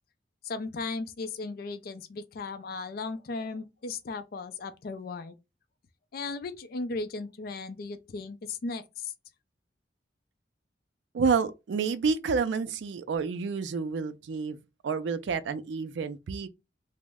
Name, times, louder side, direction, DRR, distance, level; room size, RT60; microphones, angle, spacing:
voice 1, 0.4-5.3 6.1-9.1, left 3 dB, 55° left, 0.4 m, -36 dB
voice 2, 11.1-14.6 14.8-16.5, right 5 dB, 75° right, 0.3 m, -29 dB
3.0 x 2.0 x 3.4 m
head